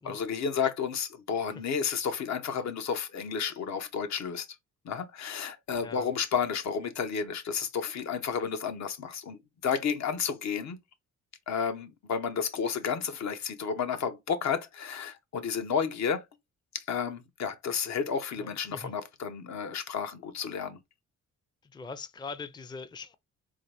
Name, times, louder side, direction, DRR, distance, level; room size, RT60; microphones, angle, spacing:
voice 1, 0.0-4.5 4.8-10.8 11.5-16.3 16.7-20.8, left 6 dB, 65° left, 0.9 m, -31 dB
voice 2, 5.8-6.1 18.4-18.9 21.6-23.2, left 4 dB, 15° left, 0.5 m, -42 dB
3.9 x 2.5 x 3.3 m
cardioid pair, 90°, 30 cm